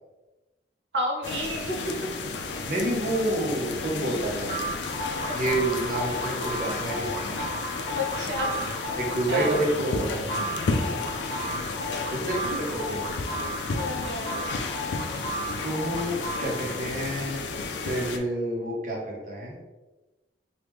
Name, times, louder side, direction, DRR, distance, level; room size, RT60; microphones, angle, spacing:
voice 1, 0.9-1.9 5.2-5.5 7.9-9.6 10.8-12.1 13.7-14.4, left 1 dB, 85° right, -1 dB, 0.7 m, -33 dB
sound 1, 1.2-18.2, left 3 dB, 75° left, 0.4 m, -33 dB
voice 2, 2.6-4.5 5.3-7.1 8.9-10.3 12.1-13.2 15.6-17.4 17.8-19.6, right 1 dB, 45° right, -3 dB, 0.8 m, -28 dB
sound 2, 4.5-17.0, equal, 55° left, 0.8 m, -34 dB
3.1 x 2.3 x 3.4 m, 1.1 s
head